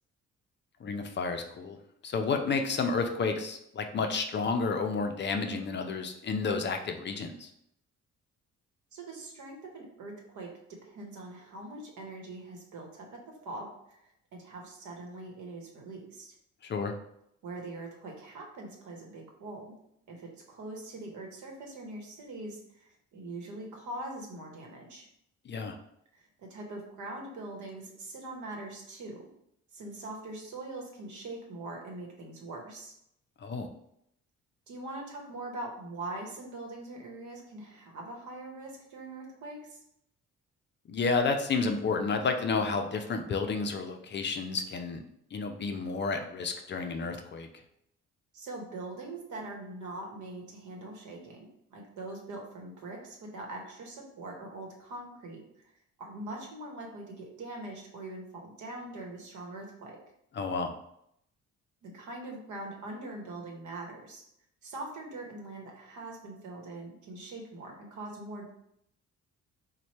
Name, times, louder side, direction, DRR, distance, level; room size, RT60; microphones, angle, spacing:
voice 1, 0.8-1.8 2.0-7.5 16.6-16.9 25.5-25.8 33.4-33.7 40.9-45.0 45.3-47.5 60.4-60.7, left 4 dB, 40° left, 5 dB, 0.4 m, -31 dB
voice 2, 8.9-10.5 10.8-13.2 13.4-16.3 17.4-19.7 20.1-25.1 26.1-29.2 29.7-32.9 34.7-39.8 48.3-55.4 56.0-60.0 61.8-64.2 64.6-68.5, right 2 dB, 75° right, 0 dB, 1.0 m, -42 dB
3.0 x 2.2 x 4.1 m, 0.75 s
cardioid pair, 90°, 30 cm